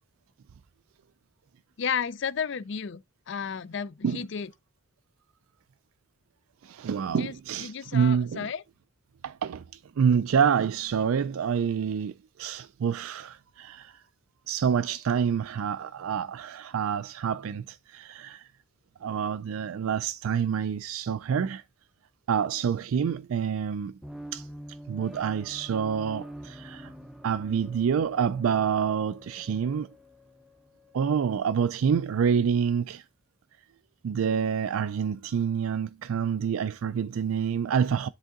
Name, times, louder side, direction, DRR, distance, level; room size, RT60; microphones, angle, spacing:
voice 1, 1.8-4.5 7.2-8.6, left 6 dB, 55° left, 0.4 m, -33 dB
voice 2, 6.6-8.5 9.2-14.0 14.5-18.5 19.0-21.6 22.3-24.0 24.3-24.5 24.9-26.9 27.2-29.9 30.9-33.0 34.0-38.1, right 7 dB, 75° right, 0.4 m, -27 dB
sound 1, 24.0-31.3, equal, ahead, 0.5 m, -46 dB
10.5 x 3.7 x 3.7 m
head